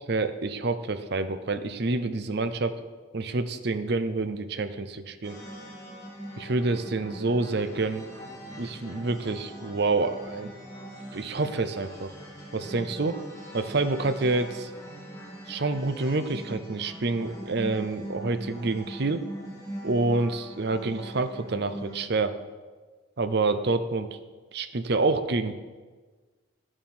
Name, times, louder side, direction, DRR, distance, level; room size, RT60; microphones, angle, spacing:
voice 1, 0.1-2.8 3.1-5.4 6.4-8.0 8.6-10.5 11.1-12.1 12.5-13.2 13.5-14.7 15.5-19.2 19.8-22.4 23.2-24.1 24.5-25.5, right 3 dB, 55° right, 10 dB, 0.7 m, -27 dB
sound 1, 5.2-22.0, right 1 dB, 15° left, 1.9 m, -42 dB
11.0 x 8.8 x 4.4 m, 1.4 s
head